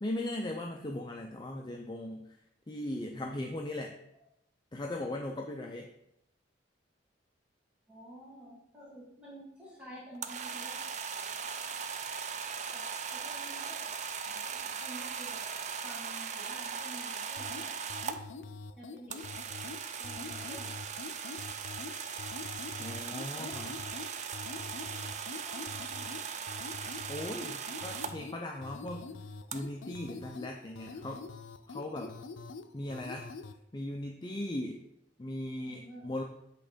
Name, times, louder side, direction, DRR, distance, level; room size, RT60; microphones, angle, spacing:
voice 1, 0.0-2.4 2.7-3.9 4.7-5.9 22.8-23.8 27.1-29.1 29.5-31.3 31.7-32.2 32.7-33.3 33.7-34.8 35.2-36.2, left 1 dB, 25° left, 2 dB, 0.5 m, -38 dB
voice 2, 7.9-11.3 12.7-13.9 14.3-17.7 18.8-19.2 20.0-20.7 21.0-21.1 22.8-23.0 23.3-23.7 24.4-25.2 25.4-26.4 35.6-36.1, right 1 dB, 5° right, -7 dB, 2.1 m, -51 dB
sound 1, 10.1-18.2 19.1-28.1 29.5-29.6, right 6 dB, 40° right, 0.5 m, -39 dB
sound 2, 17.4-33.6, left 4 dB, 80° left, 0.5 m, -45 dB
8.3 x 3.7 x 5.1 m, 0.79 s
head